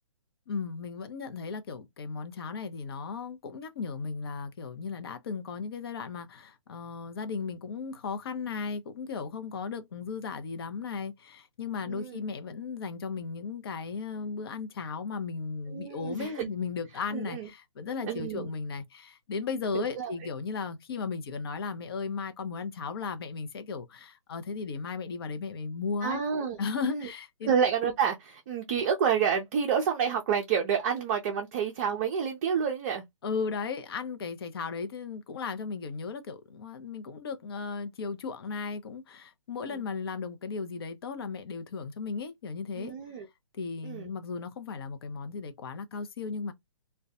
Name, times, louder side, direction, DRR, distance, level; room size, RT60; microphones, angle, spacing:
voice 1, 0.5-26.2 26.6-27.5 33.2-42.9 43.5-46.5, left 5 dB, 45° left, 0.6 m, -36 dB
voice 2, 11.9-12.2 15.7-16.5 17.1-17.5 18.0-18.5 19.7-20.1 26.0-26.6 26.9-27.1 27.4-33.0 39.6-39.8 42.8-43.3 43.8-44.1, right 7 dB, 30° right, 0.5 m, -29 dB
2.2 x 2.1 x 2.7 m
figure-of-eight pair, 130°, 17 cm